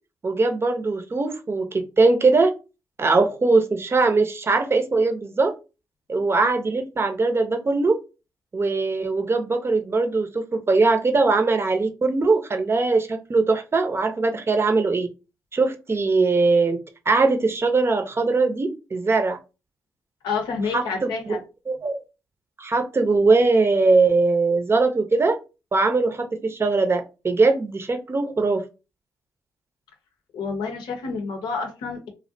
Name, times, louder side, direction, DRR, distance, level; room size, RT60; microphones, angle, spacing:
voice 1, 0.2-2.5 3.0-5.5 6.1-8.0 8.5-15.1 15.5-16.8 17.1-19.4 20.7-21.4 21.7-22.0 22.6-25.4 25.7-28.6, right 3 dB, 35° right, 6 dB, 0.6 m, -21 dB
voice 2, 20.2-21.4 30.3-32.1, left 5 dB, 75° left, 4 dB, 0.7 m, -29 dB
2.4 x 2.1 x 2.6 m, 0.30 s
hypercardioid pair, 45°, 7 cm